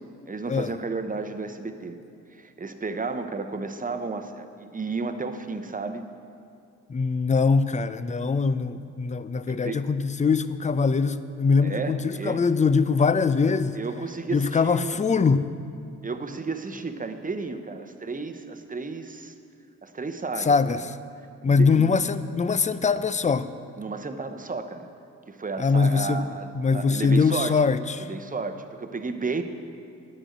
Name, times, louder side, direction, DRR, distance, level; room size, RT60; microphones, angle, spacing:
voice 1, 0.3-2.0 2.3-6.1 9.5-9.8 11.6-12.4 13.7-15.0 16.0-19.3 19.8-20.8 21.4-21.9 22.5-22.6 23.8-24.9 25.3-27.6 28.0-29.4, right 4 dB, 25° right, 0.9 m, -33 dB
voice 2, 6.9-13.8 14.3-15.5 20.4-20.8 21.4-23.5 25.6-26.2 26.6-28.1, left 4 dB, 20° left, 0.5 m, -22 dB
9.9 x 6.3 x 8.1 m
supercardioid pair, 50°, 33 cm